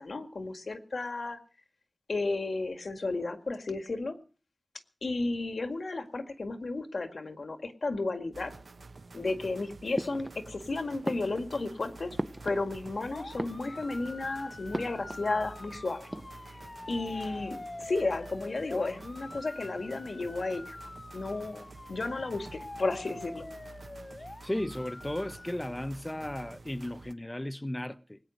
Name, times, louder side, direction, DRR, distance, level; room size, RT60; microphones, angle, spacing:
voice 1, 0.0-1.4 2.1-4.2 5.0-8.5 9.1-12.2 12.4-16.1 16.9-23.5, left 3 dB, 85° left, 1.9 m, -33 dB
sound 1, 8.3-27.1, right 3 dB, 85° right, 1.1 m, -50 dB
sound 2, 9.9-10.7 11.0-13.0 13.3-14.1 14.7-15.3 15.6-15.7 16.0-16.7, right 1 dB, 15° right, 0.7 m, -39 dB
sound 3, 13.1-25.6, left 2 dB, 50° left, 0.8 m, -46 dB
voice 2, 24.4-28.2, left 1 dB, 20° left, 0.7 m, -35 dB
19.5 x 9.1 x 6.4 m
wide cardioid pair, 60°, 0 cm